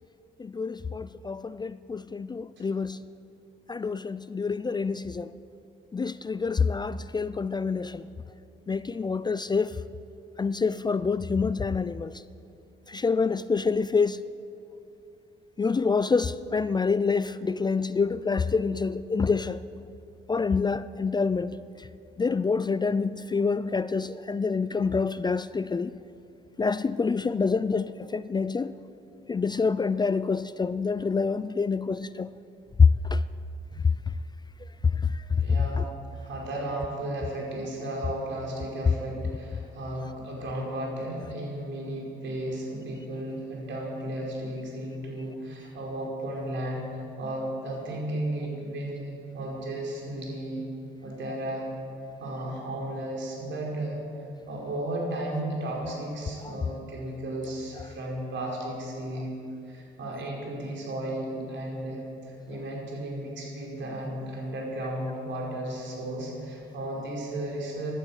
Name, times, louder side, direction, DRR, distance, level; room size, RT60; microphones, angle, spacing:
voice 1, 0.4-3.0 3.7-5.3 5.9-8.1 8.7-9.8 10.4-12.1 12.9-14.2 15.6-19.6 20.3-21.6 22.2-25.9 26.6-28.7 29.3-32.3 33.1-33.2 35.1-35.2 35.8-35.9 56.4-56.5, left 4 dB, 20° left, 0.4 m, -27 dB
voice 2, 35.4-50.7 51.0-51.7 52.2-54.0 54.5-59.3 59.6-67.9, right 1 dB, 70° right, 4.9 m, -34 dB
16.0 x 12.0 x 7.3 m
cardioid pair, 90°, 20 cm